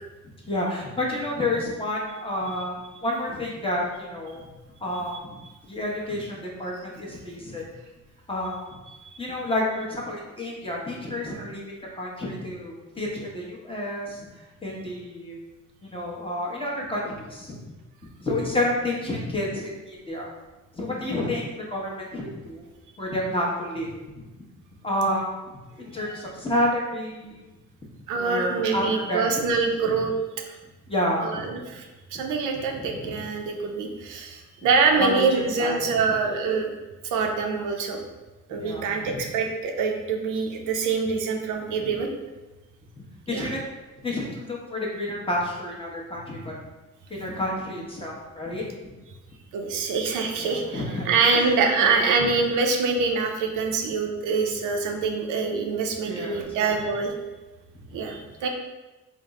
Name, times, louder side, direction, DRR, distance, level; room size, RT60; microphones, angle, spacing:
voice 1, 0.5-2.7 3.0-4.4 4.8-5.2 5.7-7.7 8.3-8.6 9.2-11.6 12.0-14.3 14.6-15.4 15.8-17.6 18.2-20.3 20.7-22.6 23.0-23.9 24.8-25.3 25.8-27.4 28.1-29.2 29.8-30.0 30.9-31.7 32.1-32.2 32.8-33.2 35.0-36.0 38.5-39.2 43.0-43.6 44.0-46.5 47.1-48.9 50.4-51.1 51.3-51.5 51.8-52.3 56.0-56.4 57.9-58.2, left 1 dB, 20° left, -3 dB, 0.9 m, -30 dB
voice 2, 28.1-30.1 31.2-31.9 32.1-36.7 37.1-38.0 38.5-42.1 43.3-43.5 49.5-57.1 57.9-58.5, right 4 dB, 85° right, 3 dB, 0.6 m, -25 dB
3.4 x 2.1 x 3.6 m, 1.1 s
cardioid pair, 90°, 30 cm